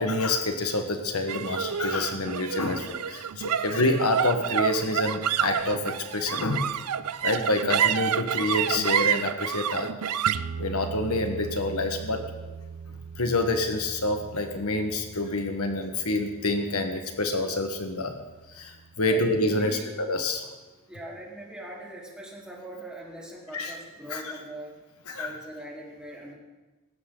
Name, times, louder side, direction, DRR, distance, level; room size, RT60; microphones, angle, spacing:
voice 1, 0.0-6.7 7.2-9.9 10.6-12.2 13.2-18.2 18.5-20.4 23.5-23.7 24.1-24.3 25.1-25.3, left 2 dB, 75° left, 5 dB, 1.5 m, -27 dB
sound 1, 1.3-17.8, right 9 dB, 85° right, 0.5 m, -30 dB
voice 2, 19.6-19.9 20.9-24.7 25.1-26.3, right 1 dB, 5° right, -5 dB, 4.0 m, -41 dB
19.5 x 16.0 x 4.0 m, 1.2 s
head